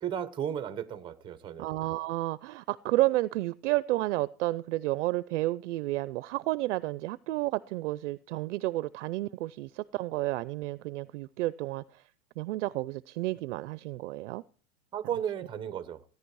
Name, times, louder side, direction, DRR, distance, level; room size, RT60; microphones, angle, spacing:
voice 1, 0.0-1.7 14.9-16.0, right 9 dB, 10° right, 0.7 m, -34 dB
voice 2, 1.6-11.8 12.4-14.4, right 18 dB, 50° right, 0.5 m, -31 dB
16.5 x 10.5 x 4.7 m
supercardioid pair, 160°, 46 cm